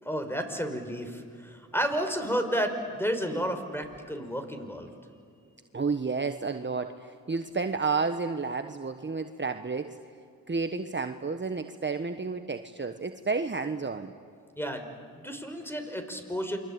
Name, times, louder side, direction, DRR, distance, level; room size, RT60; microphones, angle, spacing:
voice 1, 0.0-4.9 14.6-16.6, equal, 5° left, 6 dB, 5.0 m, -32 dB
voice 2, 5.7-9.9 10.5-14.1, right 4 dB, 30° right, 7 dB, 1.3 m, -31 dB
28.5 x 23.5 x 8.8 m, 2.4 s
cardioid pair, 50°, 37 cm